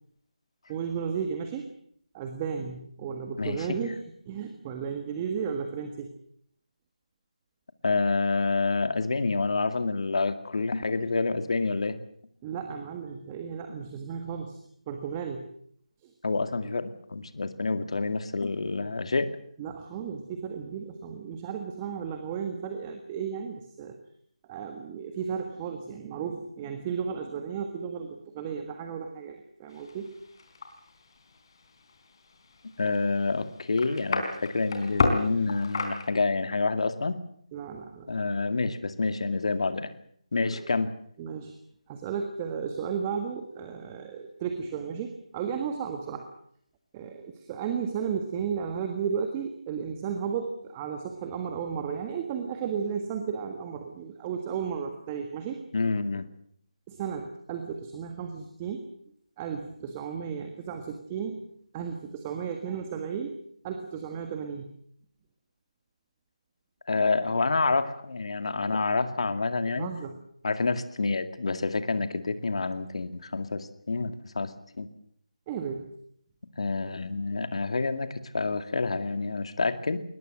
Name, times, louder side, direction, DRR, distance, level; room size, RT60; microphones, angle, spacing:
voice 1, 0.7-1.7 2.1-6.1 12.4-14.6 14.9-15.5 19.6-24.0 24.5-30.1 37.5-38.1 40.5-40.6 41.2-41.5 41.9-46.3 46.9-55.6 56.9-58.8 59.4-61.4 61.7-63.4 63.6-64.7 69.8-70.1 75.5-75.9, right 7 dB, 15° right, 6 dB, 1.6 m, -34 dB
voice 2, 3.4-3.8 7.8-12.0 16.2-19.3 32.8-37.2 38.1-39.9 40.3-40.9 55.7-56.3 66.9-69.9 70.4-74.9 76.6-80.0, left 3 dB, 50° left, 9 dB, 2.3 m, -28 dB
sound 1, 29.7-36.1, left 3 dB, 35° left, 4.0 m, -33 dB
22.0 x 20.5 x 7.8 m, 0.65 s
figure-of-eight pair, 170°, 4 cm